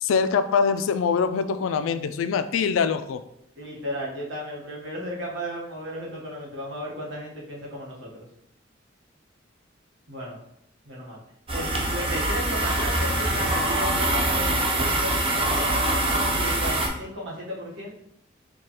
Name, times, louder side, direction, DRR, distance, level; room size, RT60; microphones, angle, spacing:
voice 1, 0.0-3.2, left 6 dB, 85° left, 11 dB, 0.3 m, -23 dB
voice 2, 3.6-8.3 10.1-10.4 10.8-11.2 11.5-15.9 16.3-17.9, equal, 65° right, -4 dB, 1.2 m, -35 dB
sound 1, 11.5-16.9, right 1 dB, 30° right, 0.5 m, -24 dB
4.7 x 2.3 x 2.9 m, 0.74 s
head